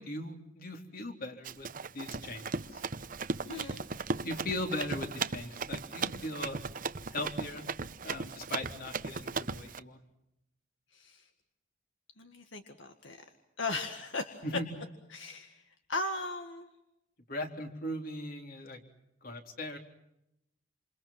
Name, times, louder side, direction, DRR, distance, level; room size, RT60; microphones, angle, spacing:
voice 1, 0.0-1.7 1.9-2.8 4.2-6.6 7.1-7.6 8.0-10.0 14.4-14.7 17.3-18.8 19.2-19.8, left 1 dB, 50° left, 4 dB, 3.8 m, -39 dB
Run, 1.4-9.8, right 4 dB, 45° right, 0.9 m, -37 dB
voice 2, 3.5-3.9 10.9-11.3 12.2-13.2 13.6-14.4 15.1-15.6 15.9-16.7, left 2 dB, 75° left, 6 dB, 1.9 m, -37 dB
28.5 x 28.0 x 5.9 m, 0.84 s
head